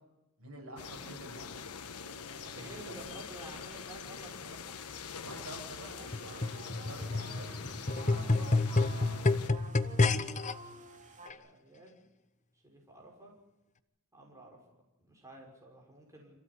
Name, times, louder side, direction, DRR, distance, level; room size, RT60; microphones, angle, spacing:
voice 1, 0.4-1.7 2.5-3.1 5.2-6.5 6.9-9.2, right 1 dB, 65° right, 2 dB, 7.6 m, -48 dB
sound 1, 0.8-9.5, left 6 dB, 85° left, 1.4 m, -44 dB
voice 2, 2.4-4.7 9.9-10.8 11.3-12.0 12.6-13.3 14.1-14.6 15.0-16.4, right 1 dB, 15° right, -1 dB, 6.3 m, -52 dB
sound 2, 5.9-11.3, right 2 dB, 35° right, 2.8 m, -51 dB
sound 3, 6.1-10.5 11.3-11.4, left 3 dB, 35° left, 1.1 m, -29 dB
26.5 x 16.0 x 9.9 m, 0.99 s
head